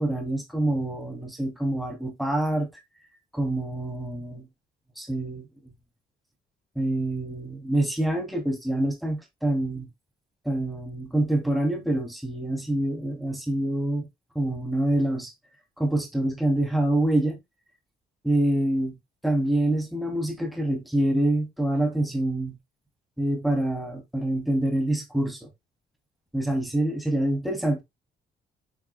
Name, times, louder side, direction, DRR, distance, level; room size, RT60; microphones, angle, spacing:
voice 1, 0.0-2.7 3.3-4.5 5.0-5.5 6.8-9.9 10.4-14.1 14.3-15.3 15.8-17.4 18.2-19.0 19.2-22.6 23.2-25.5 26.3-27.8, right 1 dB, ahead, 2.6 m, -26 dB
9.1 x 5.9 x 2.2 m
cardioid pair, 90°, 20 cm